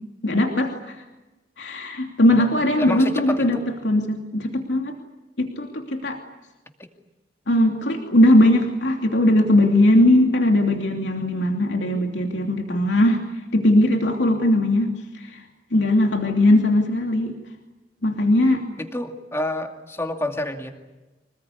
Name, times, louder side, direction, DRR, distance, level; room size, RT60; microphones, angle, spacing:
voice 1, 0.2-1.0 1.6-3.6 3.8-4.9 5.4-6.2 7.5-13.2 13.5-15.4 15.7-17.4 18.0-18.7, left 1 dB, 85° left, 2 dB, 2.9 m, -19 dB
voice 2, 2.8-3.7 6.8-6.9 18.8-20.7, left 1 dB, 15° left, 3 dB, 2.4 m, -29 dB
26.5 x 20.0 x 9.7 m, 1.1 s
head